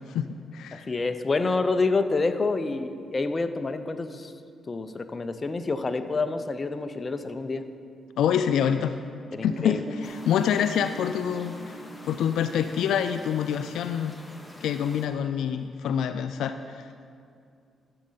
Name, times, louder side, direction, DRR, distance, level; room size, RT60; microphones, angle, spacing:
voice 1, 0.0-0.9 8.2-8.9 9.4-11.8 12.0-14.1 14.6-16.9, left 8 dB, 80° left, 9 dB, 0.3 m, -26 dB
voice 2, 0.7-4.3 4.7-7.6 9.3-9.8, left 3 dB, 35° left, 9 dB, 0.7 m, -28 dB
Guitar, 9.4-14.0, right 1 dB, 60° right, 1.3 m, -43 dB
sound 1, 10.0-15.1, left 1 dB, 15° left, 1.5 m, -46 dB
13.5 x 7.5 x 4.0 m, 2.4 s
cardioid pair, 70°, 0 cm